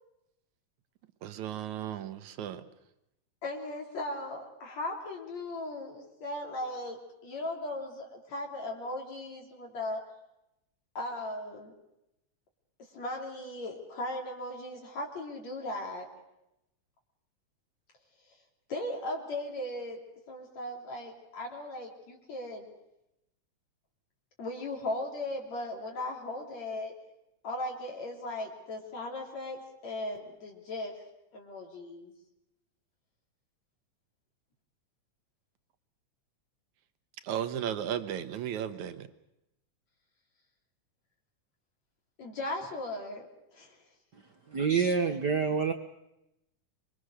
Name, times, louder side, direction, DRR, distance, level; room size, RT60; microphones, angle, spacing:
voice 1, 1.2-2.6 37.2-39.1, right 10 dB, 85° right, 10 dB, 2.6 m, -35 dB
voice 2, 3.4-10.0 11.0-11.7 12.9-16.1 18.7-20.0 20.3-22.7 24.4-26.9 27.4-31.0 31.3-32.1 42.2-43.3 43.5-43.8, left 1 dB, 65° left, 0 dB, 4.4 m, -37 dB
voice 3, 44.1-45.7, right 5 dB, 55° right, 6 dB, 1.2 m, -28 dB
25.5 x 23.0 x 6.5 m, 0.87 s
omnidirectional pair, 3.3 m